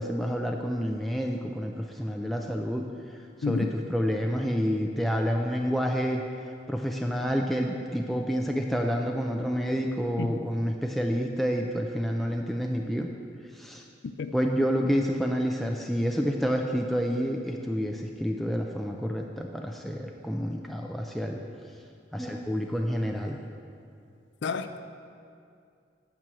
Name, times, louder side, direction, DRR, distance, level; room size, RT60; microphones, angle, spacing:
voice 1, 0.0-2.9 3.4-6.2 6.7-13.1 13.5-13.8 14.3-21.4 22.1-23.4, equal, ahead, 1 dB, 0.4 m, -28 dB
voice 2, 24.4-24.8, left 5 dB, 65° left, 10 dB, 0.4 m, -30 dB
8.9 x 6.2 x 6.9 m, 2.4 s
head